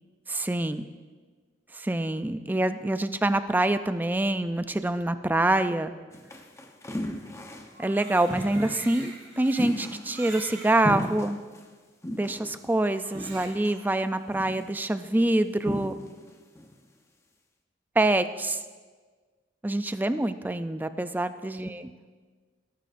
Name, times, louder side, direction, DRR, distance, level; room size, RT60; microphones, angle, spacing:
voice 1, 0.3-0.9 1.7-5.9 7.8-11.4 12.2-16.0 18.0-18.6 19.6-21.9, right 1 dB, 10° right, 11 dB, 0.4 m, -26 dB
sound 1, 6.1-7.8 8.3-8.9 9.6-10.6 10.8-11.6 12.0-12.6 13.1-13.6 14.3-14.7 15.7-16.3 16.5-16.7, equal, 15° left, 0.9 m, -35 dB
Crying sobbing, 7.7-10.8 11.5-11.6 12.9-13.8, right 3 dB, 90° right, 3.8 m, -44 dB
19.5 x 11.5 x 2.6 m, 1.5 s
head